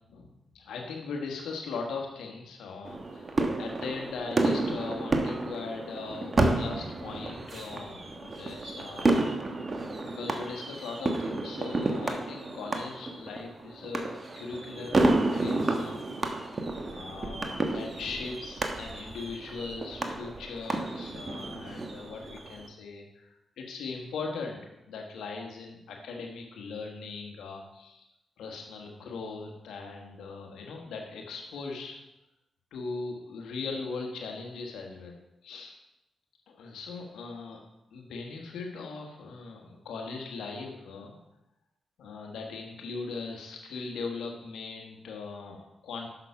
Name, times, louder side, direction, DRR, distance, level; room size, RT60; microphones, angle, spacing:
voice 1, 0.1-9.7 10.1-16.4 16.9-24.6 24.9-28.0 28.4-32.0 32.7-35.1 35.4-35.7 36.5-37.6 37.9-41.2 42.0-46.1, left 4 dB, 85° left, 2 dB, 1.5 m, -39 dB
sound 1, 2.8-22.7, right 2 dB, 40° right, 1.2 m, -31 dB
6.4 x 6.1 x 5.8 m, 0.89 s
supercardioid pair, 50°, 0 cm